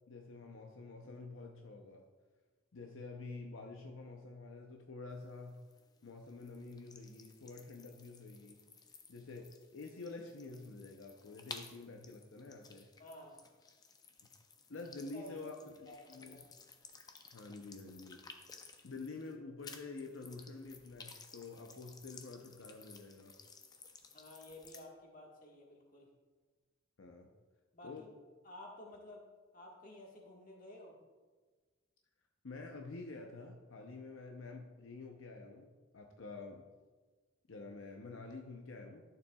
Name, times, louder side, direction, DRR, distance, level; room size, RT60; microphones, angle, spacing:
voice 1, 0.1-2.0 2.7-5.6 6.0-8.6 9.1-12.9 14.7-16.4 17.3-18.2 18.5-23.4 27.0-27.3 27.8-28.1 32.4-36.6 37.5-39.0, left 3 dB, 80° left, 2 dB, 0.7 m, -48 dB
sound 1, 5.1-19.4 19.6-24.9, left 4 dB, 20° left, 0.4 m, -56 dB
voice 2, 13.0-13.5 15.1-16.4 24.1-26.1 27.7-28.0 28.4-29.2 29.5-31.0, left 1 dB, 40° left, -1 dB, 1.5 m, -53 dB
11.5 x 6.9 x 2.3 m, 1.3 s
head